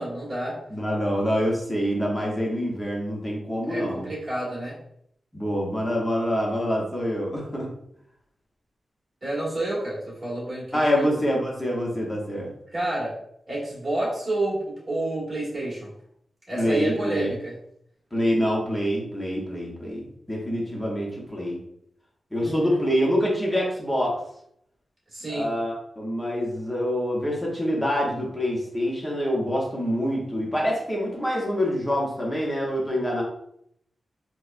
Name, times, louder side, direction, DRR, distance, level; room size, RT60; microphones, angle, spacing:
voice 1, 0.0-0.6 3.7-4.8 9.2-11.1 12.7-13.1 13.5-15.9 16.5-17.5 22.4-22.8 25.1-25.5, right 1 dB, 30° right, -5 dB, 1.5 m, -29 dB
voice 2, 0.7-4.1 5.3-7.7 10.7-12.5 16.6-17.3 18.1-21.6 22.3-24.2 25.3-33.2, equal, 10° left, -3 dB, 0.9 m, -26 dB
4.6 x 2.2 x 2.5 m, 0.72 s
wide cardioid pair, 150°, 0 cm